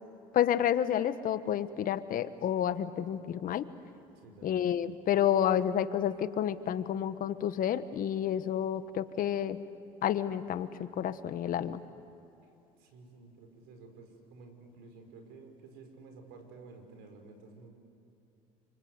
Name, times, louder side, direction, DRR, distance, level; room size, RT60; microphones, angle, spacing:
voice 1, 0.3-3.7 4.4-9.6 10.0-11.8, left 10 dB, 55° left, 12 dB, 1.3 m, -30 dB
voice 2, 4.2-4.7 12.4-12.5 12.8-17.7, right 3 dB, 75° right, 5 dB, 5.3 m, -52 dB
28.5 x 25.5 x 8.1 m, 2.9 s
supercardioid pair, 90°, 17 cm